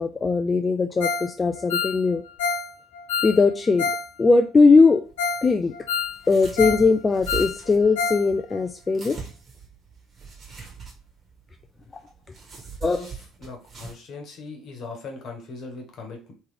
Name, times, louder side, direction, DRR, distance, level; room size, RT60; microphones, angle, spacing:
voice 1, 0.0-2.2 3.2-3.9 4.2-5.0 5.4-5.7 6.3-9.2 12.8-13.0, left 4 dB, 25° left, 7 dB, 0.3 m, -19 dB
Ringtone, 1.0-1.3 1.5-4.1 4.3-4.4 4.9-5.0 5.2-5.5 5.7-6.9 7.1-8.3 8.5-8.6 9.0-9.1, left 5 dB, 75° left, 1.0 m, -27 dB
sound 1, 5.0-13.9, right 6 dB, 40° right, 1.7 m, -41 dB
voice 2, 12.9-16.3, left 3 dB, 55° left, 3 dB, 1.2 m, -39 dB
3.3 x 3.2 x 3.3 m, 0.34 s
figure-of-eight pair, 55°, 0 cm